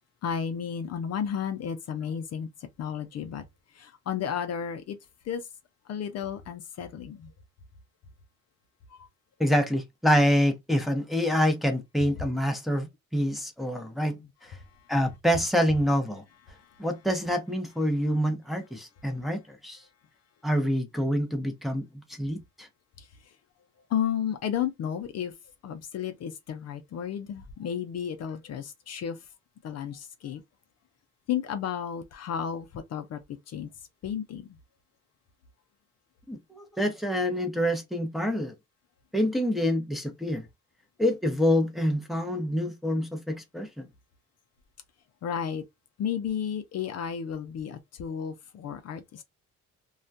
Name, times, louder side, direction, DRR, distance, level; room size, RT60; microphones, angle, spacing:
voice 1, 0.2-2.5 2.8-3.4 3.8-5.0 5.3-5.4 5.9-7.3 14.1-14.3 23.9-25.3 25.6-29.2 29.6-30.4 31.3-33.2 33.5-33.7 34.0-34.4 45.2-45.6 46.0-49.2, left 8 dB, 60° left, 0.5 m, -32 dB
voice 2, 9.4-12.9 13.1-14.2 14.9-16.2 16.8-19.8 20.4-21.8 22.2-22.7 36.3-38.5 39.1-40.4 41.0-43.9, equal, ahead, 0.6 m, -26 dB
2.3 x 2.1 x 2.6 m
cardioid pair, 90°, 30 cm